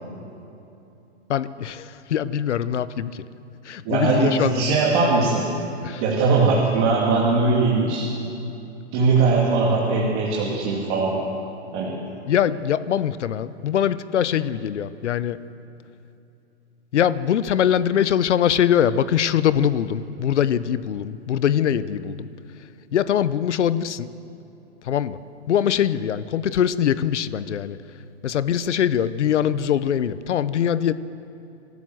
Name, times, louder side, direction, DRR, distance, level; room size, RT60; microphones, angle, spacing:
voice 1, 1.3-3.2 3.6-4.6 5.8-6.0 12.3-15.4 16.9-22.3 22.9-24.1 24.8-25.2 25.5-27.8 28.2-30.9, left 9 dB, 80° left, 15 dB, 0.9 m, -22 dB
voice 2, 3.8-5.4 6.0-8.1 8.9-11.2 11.7-12.0, right 3 dB, 25° right, -5 dB, 2.4 m, -20 dB
27.0 x 12.5 x 7.8 m, 2.8 s
hypercardioid pair, 170°, 35 cm